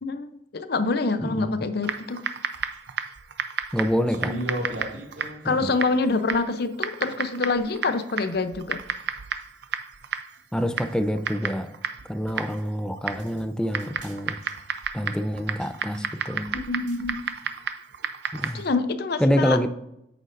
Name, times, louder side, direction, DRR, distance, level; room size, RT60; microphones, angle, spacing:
voice 1, 0.0-2.2 5.4-8.8 16.5-17.2 18.5-19.6, left 3 dB, 60° left, 0.6 m, -26 dB
voice 2, 1.3-1.6 3.7-4.4 5.4-5.7 10.5-11.7 12.1-14.4 14.9-16.6 18.3-18.6 19.2-19.7, equal, 5° left, 0.4 m, -26 dB
Typing, 1.8-18.7, right 7 dB, 65° right, 0.6 m, -33 dB
sound 1, 4.1-5.5 9.4-9.5 10.3-10.4 12.5-12.7 13.2-13.4 13.7-14.2 14.4-14.7 15.6-16.0 16.9-17.1, equal, 80° right, 2.1 m, -34 dB
8.9 x 6.6 x 2.5 m
head